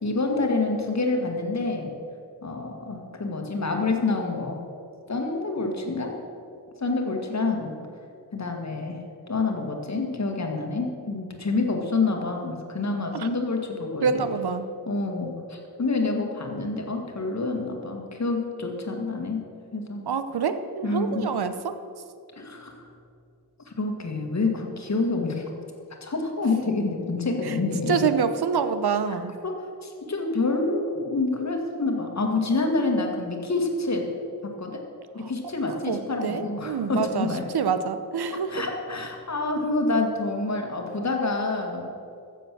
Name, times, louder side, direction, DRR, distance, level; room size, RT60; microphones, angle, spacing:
voice 1, 0.0-1.9 2.4-4.6 5.1-6.1 6.8-7.8 8.3-9.0 9.3-14.3 14.9-19.4 19.7-20.0 20.8-21.3 22.4-22.8 23.7-25.5 26.0-28.0 29.4-29.5 29.8-34.1 34.4-34.8 35.1-37.4 38.3-41.9, left 3 dB, 40° left, 2 dB, 1.9 m, -27 dB
voice 2, 14.0-14.7 20.1-21.8 27.4-27.6 27.9-29.3 35.2-35.3 35.7-37.3 37.5-38.5, right 6 dB, 70° right, 10 dB, 0.9 m, -26 dB
14.5 x 7.5 x 6.2 m, 2.5 s
wide cardioid pair, 125°, 41 cm